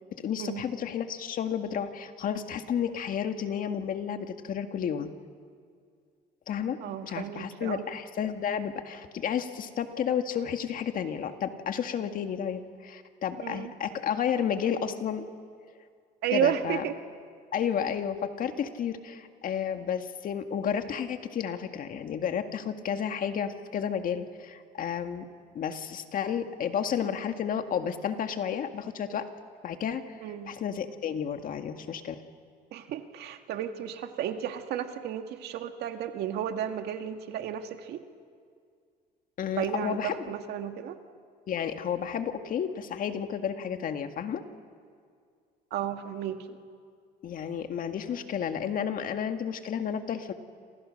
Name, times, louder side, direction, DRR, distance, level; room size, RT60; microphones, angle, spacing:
voice 1, 0.1-5.1 6.5-15.3 16.3-16.8 17.5-25.3 25.5-29.3 29.6-30.1 30.4-32.2 39.4-40.3 41.5-44.4 47.2-50.3, left 8 dB, 55° left, 7 dB, 1.9 m, -31 dB
voice 2, 6.8-7.9 13.4-13.7 16.2-16.9 30.2-30.5 32.7-38.0 39.6-41.0 45.7-46.6, right 10 dB, 75° right, 6 dB, 1.9 m, -33 dB
28.5 x 27.5 x 6.6 m, 2.1 s
cardioid pair, 110°, 17 cm